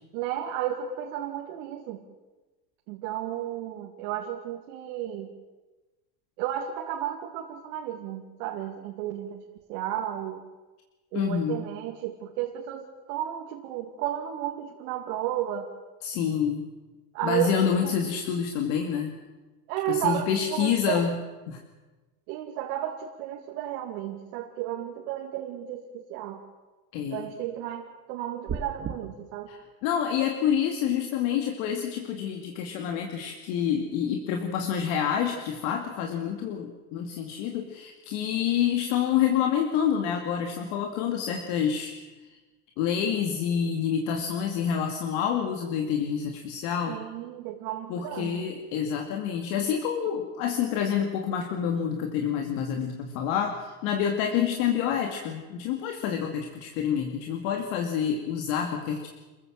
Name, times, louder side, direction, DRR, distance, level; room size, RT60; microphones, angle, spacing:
voice 1, 0.1-2.0 2.9-5.3 6.4-9.4 9.7-10.4 11.1-15.7 17.1-17.9 19.7-21.1 22.3-26.4 27.1-29.5 46.9-48.4, right 11 dB, 70° right, 1 dB, 2.5 m, -33 dB
voice 2, 11.1-11.7 16.0-16.6 17.2-19.1 19.9-21.2 21.5-21.6 26.9-27.3 29.5-41.9 42.8-47.0 47.9-59.1, left 8 dB, 65° left, 3 dB, 2.5 m, -28 dB
sound 1, 28.5-29.0, right 6 dB, 30° right, 2.1 m, -32 dB
28.0 x 15.0 x 7.6 m, 1.2 s
supercardioid pair, 125°, 47 cm